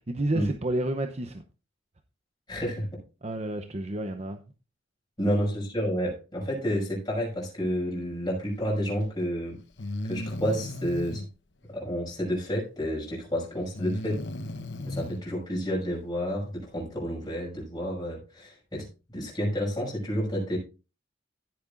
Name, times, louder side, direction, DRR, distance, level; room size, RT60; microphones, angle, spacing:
voice 1, 0.1-1.4 3.2-4.4, right 1 dB, 35° right, 0.7 m, -30 dB
voice 2, 2.5-3.0 5.2-9.6 10.0-11.2 11.7-14.2 14.9-20.6, equal, 20° left, 5.9 m, -30 dB
Breathing, 8.9-9.0 9.8-11.3 13.7-15.2, left 1 dB, 65° left, 0.9 m, -35 dB
15.5 x 8.5 x 2.5 m
head